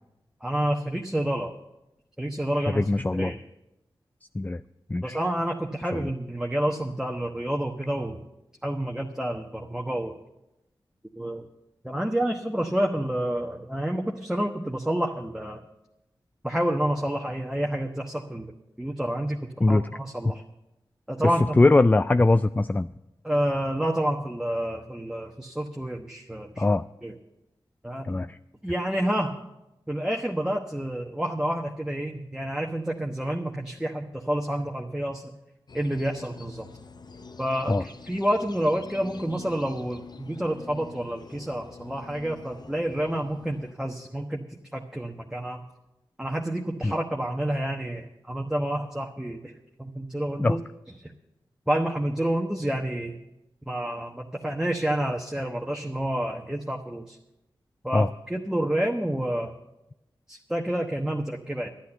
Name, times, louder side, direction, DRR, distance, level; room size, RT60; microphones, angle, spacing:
voice 1, 0.4-1.5 2.2-2.8 3.1-3.4 5.0-8.2 8.6-10.2 11.2-11.5 11.8-15.6 16.4-18.5 18.8-19.4 19.7-20.4 21.1-21.6 23.2-26.6 27.0-27.1 27.8-28.0 28.6-29.3 29.9-35.2 35.7-36.7 37.4-44.4 44.7-45.6 46.2-49.5 49.8-50.6 51.0-51.1 51.7-53.2 53.7-57.2 57.8-59.6 60.3-61.7, right 1 dB, 5° right, 1 dB, 1.2 m, -29 dB
voice 2, 2.7-3.3 4.3-4.6 4.9-5.2 5.9-6.0 19.6-19.8 20.2-20.3 21.2-22.9 26.6-26.8 28.0-28.4 37.7-37.8 46.8-46.9 50.4-50.6 57.9-58.1, left 2 dB, 15° left, 12 dB, 0.3 m, -21 dB
sound 1, 35.7-43.7, left 4 dB, 50° left, 0.7 m, -45 dB
11.5 x 8.4 x 7.9 m, 0.92 s
cardioid pair, 40°, 9 cm